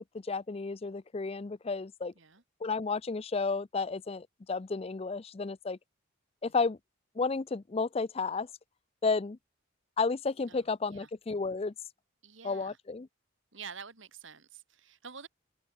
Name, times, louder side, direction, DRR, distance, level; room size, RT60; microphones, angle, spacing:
voice 1, 0.2-2.1 2.6-5.8 6.4-6.8 7.2-8.5 9.0-9.4 10.0-11.7 12.4-13.1, left 4 dB, 30° left, 0.4 m, -32 dB
voice 2, 10.5-11.1 12.2-12.8 13.5-15.3, right 6 dB, 65° right, 2.1 m, -48 dB
open air
head